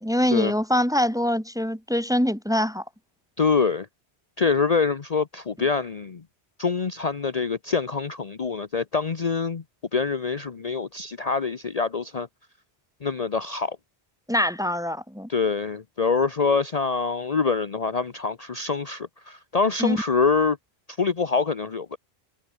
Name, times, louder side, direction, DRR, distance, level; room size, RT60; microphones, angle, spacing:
voice 1, 0.0-2.8 14.3-15.3 19.8-20.0, equal, 5° right, 1.5 m, -24 dB
voice 2, 3.4-3.9 4.4-6.2 6.6-9.6 9.9-12.3 13.0-13.8 15.3-20.6 20.9-22.0, left 5 dB, 40° left, 0.9 m, -25 dB
omnidirectional pair, 1.1 m